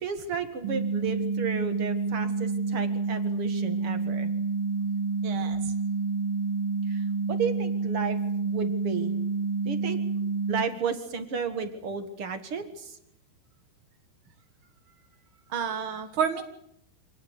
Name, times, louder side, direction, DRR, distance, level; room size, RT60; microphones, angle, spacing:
voice 1, 0.0-4.3 6.9-8.2 8.4-9.1 9.6-10.0 10.5-13.0, right 6 dB, 65° right, 8 dB, 1.4 m, -33 dB
sound 1, 0.6-10.6, right 4 dB, 30° right, 3.7 m, -28 dB
voice 2, 5.2-5.7 15.5-16.4, right 7 dB, 85° right, 7 dB, 1.1 m, -30 dB
26.5 x 19.0 x 8.2 m, 0.76 s
omnidirectional pair, 5.2 m